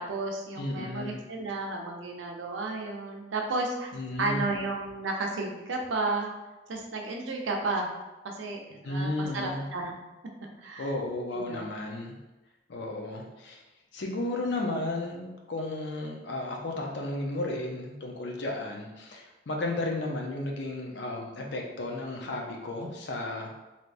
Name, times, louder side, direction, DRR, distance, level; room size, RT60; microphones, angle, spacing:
voice 1, 0.0-3.9 4.2-6.3 6.7-7.9 8.2-9.9 10.6-10.9 11.3-11.7, right 2 dB, 85° right, 1 dB, 0.5 m, -32 dB
voice 2, 0.6-1.2 3.9-4.5 8.8-9.6 10.8-12.2 12.7-13.6 13.9-23.5, left 2 dB, 65° left, 0 dB, 0.5 m, -33 dB
3.3 x 2.8 x 2.5 m, 1.1 s
head